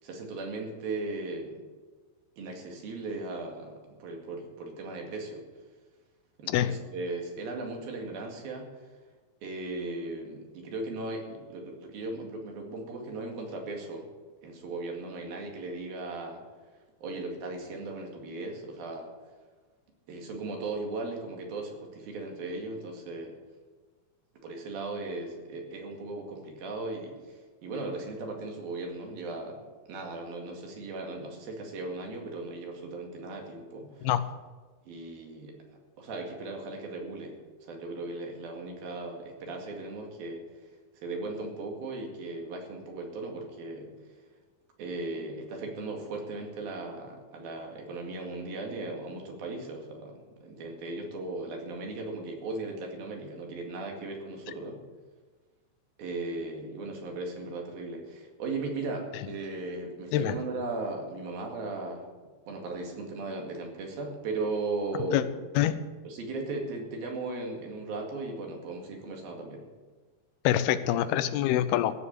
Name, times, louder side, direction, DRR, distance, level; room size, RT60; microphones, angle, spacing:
voice 1, 0.0-1.6 2.4-5.5 6.4-8.7 9.4-14.1 14.4-16.4 17.0-19.1 20.1-23.4 24.4-34.1 34.8-35.6 36.0-40.4 41.0-43.9 44.8-54.8 56.0-62.1 62.5-65.3 66.0-69.7, right 2 dB, 70° right, 2 dB, 3.9 m, -37 dB
voice 2, 70.4-71.9, left 12 dB, 85° left, 13 dB, 2.7 m, -25 dB
15.0 x 7.2 x 8.3 m, 1.4 s
omnidirectional pair, 4.4 m